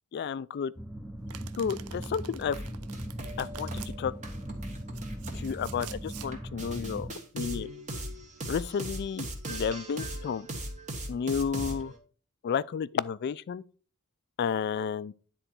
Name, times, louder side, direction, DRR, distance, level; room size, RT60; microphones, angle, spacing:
voice 1, 0.1-0.7 1.6-2.6 3.4-3.7 4.0-4.1 5.3-7.1 7.3-7.7 8.5-10.5 11.1-11.9 12.4-13.6 14.4-15.1, left 7 dB, 45° left, 0.3 m, -31 dB
sound 1, 0.8-7.1, equal, 5° right, 0.6 m, -39 dB
Domestic sounds home sounds, 1.3-3.9 4.7-6.3, right 10 dB, 80° right, 0.5 m, -47 dB
sound 2, 2.4-12.0, right 1 dB, 35° right, 1.5 m, -39 dB
10.0 x 3.8 x 4.5 m
head